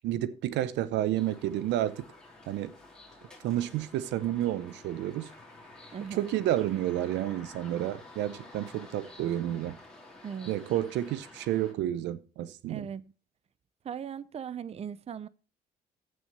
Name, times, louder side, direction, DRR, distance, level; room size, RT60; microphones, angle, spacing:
voice 1, 0.0-2.1 2.5-2.7 3.4-5.3 6.1-9.8 10.5-12.9, right 13 dB, 85° right, 0.7 m, -30 dB
sound 1, 1.1-11.7, left 2 dB, 5° left, 3.1 m, -51 dB
voice 2, 5.9-6.3 10.2-10.5 12.7-13.1 13.8-15.3, right 8 dB, 35° right, 0.6 m, -38 dB
7.8 x 6.3 x 6.7 m
cardioid pair, 90°, 18 cm